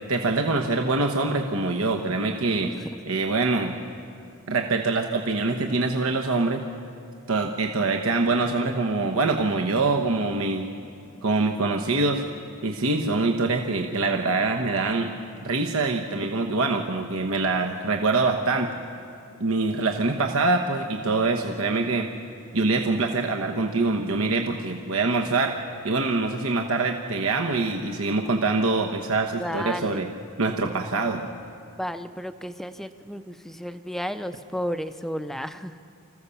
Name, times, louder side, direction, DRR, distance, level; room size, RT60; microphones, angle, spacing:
voice 1, 0.1-2.7 3.1-3.8 4.5-6.6 7.3-10.7 11.2-12.2 12.6-15.1 15.4-18.7 19.4-22.1 22.5-25.6 25.8-30.1 30.4-31.3, right 3 dB, 80° right, 3 dB, 1.1 m, -24 dB
voice 2, 2.5-2.9 29.4-30.1 31.8-35.8, equal, ahead, 10 dB, 0.5 m, -33 dB
26.5 x 15.0 x 7.0 m, 2.4 s
head